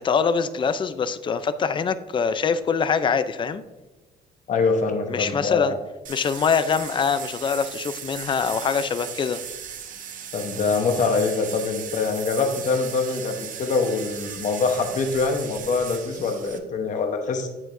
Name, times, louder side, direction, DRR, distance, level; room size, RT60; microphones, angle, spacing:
voice 1, 0.0-3.6 5.1-5.7 6.1-9.4, left 6 dB, 30° left, 13 dB, 0.5 m, -24 dB
voice 2, 4.5-5.8 10.3-17.5, left 4 dB, 45° left, 5 dB, 1.0 m, -24 dB
sound 1, 6.0-16.6, right 7 dB, 50° right, 0.9 m, -37 dB
8.0 x 7.4 x 2.6 m, 1.1 s
cardioid pair, 110°, 17 cm